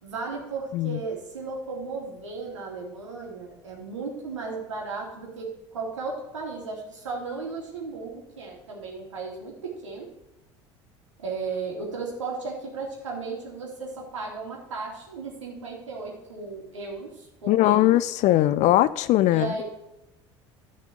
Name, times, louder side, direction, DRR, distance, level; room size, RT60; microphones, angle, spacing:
voice 1, 0.0-10.1 11.2-17.9 19.3-19.6, right 4 dB, 85° right, -1 dB, 3.1 m, -35 dB
voice 2, 17.5-19.5, left 14 dB, 50° left, 15 dB, 0.4 m, -20 dB
11.5 x 5.3 x 7.8 m, 0.92 s
hypercardioid pair, 70°, 15 cm